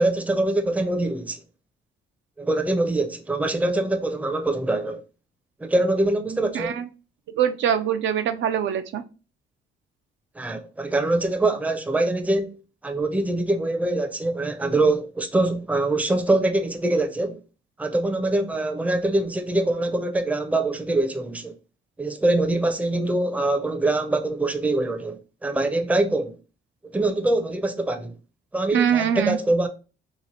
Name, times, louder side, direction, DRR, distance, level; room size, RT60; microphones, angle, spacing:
voice 1, 0.0-1.4 2.4-5.0 5.6-6.8 10.4-12.5 12.8-17.4 17.8-21.5 22.0-26.4 26.9-28.1 28.5-29.7, right 2 dB, 5° right, 0.5 m, -24 dB
voice 2, 6.5-6.9 7.4-9.0 28.7-29.4, right 9 dB, 70° right, 0.4 m, -23 dB
3.0 x 2.5 x 4.0 m
cardioid pair, 90°, 20 cm